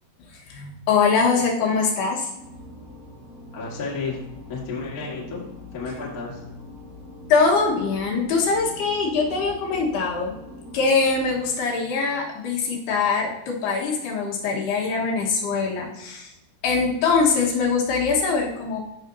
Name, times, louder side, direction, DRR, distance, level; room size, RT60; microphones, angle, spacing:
voice 1, 0.5-2.3 7.3-10.3 10.7-16.3 16.6-18.8, left 4 dB, 75° left, -2 dB, 3.3 m, -22 dB
sound 1, 2.3-11.5, left 1 dB, 25° left, 2.5 m, -43 dB
voice 2, 3.5-4.2 4.5-5.4 5.7-6.4, left 4 dB, 40° left, -4 dB, 1.3 m, -32 dB
14.0 x 5.8 x 2.7 m, 0.91 s
omnidirectional pair, 4.8 m